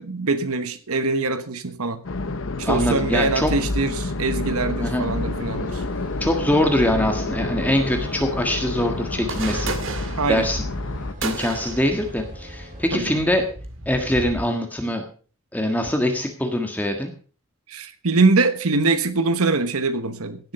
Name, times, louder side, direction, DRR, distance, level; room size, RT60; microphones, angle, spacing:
voice 1, 0.0-2.0 2.6-5.8 10.2-10.5 12.9-13.2 17.7-20.5, right 3 dB, 85° right, 11 dB, 1.2 m, -23 dB
sound 1, 2.0-11.1, left 2 dB, 65° left, 0.9 m, -29 dB
voice 2, 2.6-3.5 4.8-5.1 6.2-9.7 10.3-10.6 11.2-13.4 13.8-15.0 15.5-17.1, left 1 dB, 10° left, 4 dB, 1.6 m, -23 dB
sound 2, 5.0-13.3, equal, 40° right, 3.5 m, -41 dB
sound 3, 9.1-14.4, right 2 dB, 60° right, 2.1 m, -33 dB
16.5 x 7.7 x 5.7 m, 0.40 s
head